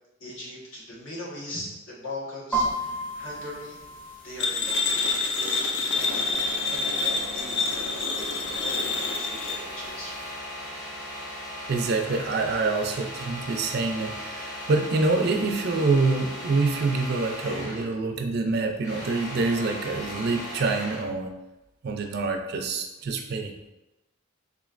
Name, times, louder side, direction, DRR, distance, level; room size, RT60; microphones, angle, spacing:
voice 1, 0.2-3.8 4.2-10.1, left 1 dB, 75° left, -6 dB, 1.2 m, -40 dB
sound 1, 2.5-10.3, right 1 dB, 10° left, 0.5 m, -37 dB
sound 2, 4.4-9.6, left 4 dB, 60° left, 0.4 m, -27 dB
sound 3, 5.9-18.0 18.3-21.1, equal, 40° left, 1.0 m, -38 dB
voice 2, 11.7-21.3 21.8-23.5, right 3 dB, 50° right, 4 dB, 0.4 m, -26 dB
3.8 x 3.1 x 2.4 m, 0.97 s
head